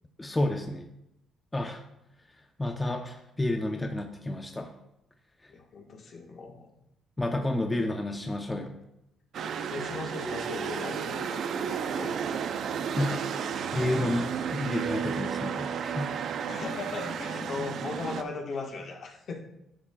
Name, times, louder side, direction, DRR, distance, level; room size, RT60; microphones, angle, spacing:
voice 1, 0.2-0.9 1.5-1.8 2.6-4.7 7.2-8.8 13.0-13.2 13.7-16.1, left 1 dB, 20° left, 4 dB, 0.8 m, -30 dB
voice 2, 5.5-6.7 9.7-12.2 16.5-19.4, left 3 dB, 60° left, 2 dB, 1.4 m, -38 dB
sound 1, 9.3-18.2, right 7 dB, 65° right, 0.6 m, -32 dB
11.0 x 7.2 x 2.4 m, 0.85 s
supercardioid pair, 65°, 0 cm